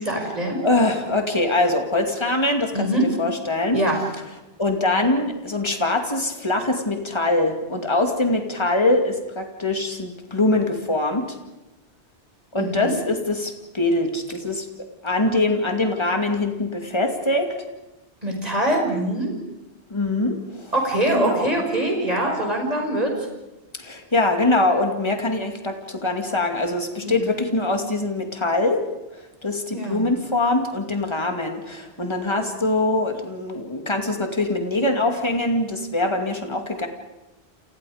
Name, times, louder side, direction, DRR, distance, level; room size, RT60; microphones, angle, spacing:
voice 1, 0.0-0.6 2.7-3.0 3.7-4.0 12.6-12.9 18.2-19.3 20.7-23.1 27.0-27.3 29.7-30.0, right 1 dB, 35° right, 1 dB, 6.2 m, -23 dB
voice 2, 0.6-2.9 3.2-3.8 4.6-11.4 12.5-14.7 15.0-17.5 19.9-20.7 21.1-21.6 23.8-28.8 29.1-36.9, left 2 dB, 25° left, 4 dB, 2.5 m, -23 dB
30.0 x 28.5 x 5.1 m, 1.0 s
omnidirectional pair, 1.1 m